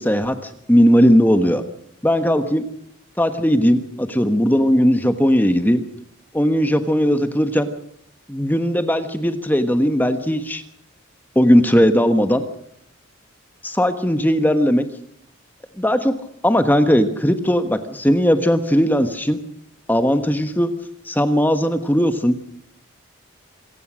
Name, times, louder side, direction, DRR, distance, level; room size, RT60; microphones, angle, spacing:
voice 1, 0.0-1.6 2.0-2.6 3.2-5.8 6.3-7.7 8.3-10.6 11.3-12.4 13.6-14.8 15.8-16.1 16.4-19.4 19.9-20.7 21.0-22.4, equal, 10° left, 8 dB, 1.3 m, -17 dB
26.5 x 17.5 x 6.2 m, 0.72 s
head